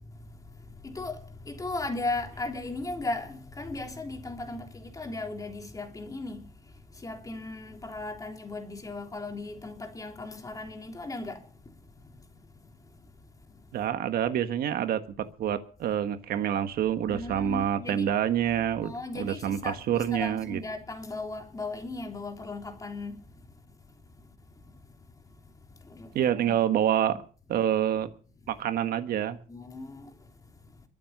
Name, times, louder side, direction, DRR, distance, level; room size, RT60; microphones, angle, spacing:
voice 1, 0.1-12.4 12.8-12.9 13.5-13.6 17.1-18.1 18.8-23.4 24.6-24.8 25.5-26.6 29.5-30.4, left 2 dB, 20° left, 3.4 m, -37 dB
voice 2, 13.7-20.6 26.1-27.2 27.5-28.1 28.5-29.4, right 10 dB, 65° right, 1.5 m, -27 dB
23.0 x 7.7 x 6.7 m
cardioid pair, 110°, 17 cm